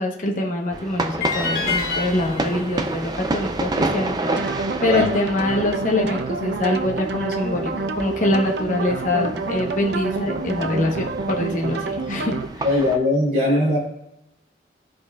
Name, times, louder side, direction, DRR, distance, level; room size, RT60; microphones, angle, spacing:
voice 1, 0.0-12.4, left 1 dB, 45° left, 0 dB, 1.0 m, -24 dB
sound 1, 0.7-13.0, right 2 dB, 20° right, 0.4 m, -30 dB
sound 2, 1.2-4.4, left 4 dB, 90° left, 1.9 m, -29 dB
sound 3, 4.3-12.5, right 3 dB, 70° right, 0.6 m, -28 dB
voice 2, 12.6-13.8, left 1 dB, 45° right, -5 dB, 2.8 m, -19 dB
13.0 x 5.1 x 2.3 m, 0.87 s
head